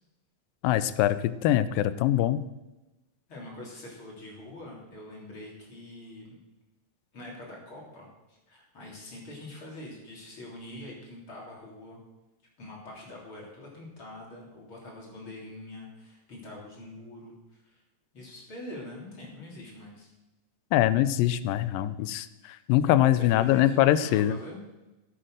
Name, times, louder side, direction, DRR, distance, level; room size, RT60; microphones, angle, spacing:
voice 1, 0.6-2.5 20.7-24.4, left 13 dB, 85° left, 14 dB, 2.3 m, -23 dB
voice 2, 3.3-6.4 7.1-12.0 12.6-17.4 17.6-17.8 18.1-20.1 23.2-24.6, left 1 dB, 40° left, -2 dB, 3.8 m, -44 dB
14.5 x 8.7 x 6.5 m, 1.0 s
omnidirectional pair, 3.9 m